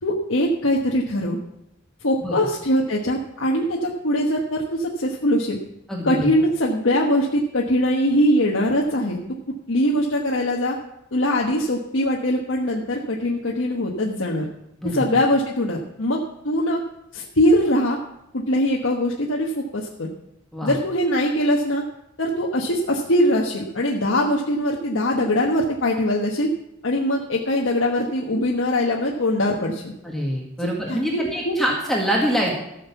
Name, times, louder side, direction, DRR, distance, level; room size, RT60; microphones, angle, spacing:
voice 1, 0.0-1.4 2.0-5.6 6.0-9.2 9.5-10.8 11.1-14.5 14.8-16.8 17.1-18.0 18.3-20.1 20.6-21.8 22.2-26.5 26.8-29.9 30.6-31.5, left 1 dB, 85° left, -1 dB, 1.2 m, -22 dB
voice 2, 5.9-6.3 14.8-14.9 20.5-20.7 30.0-32.6, equal, ahead, -2 dB, 1.7 m, -24 dB
14.5 x 6.5 x 7.1 m, 0.85 s
head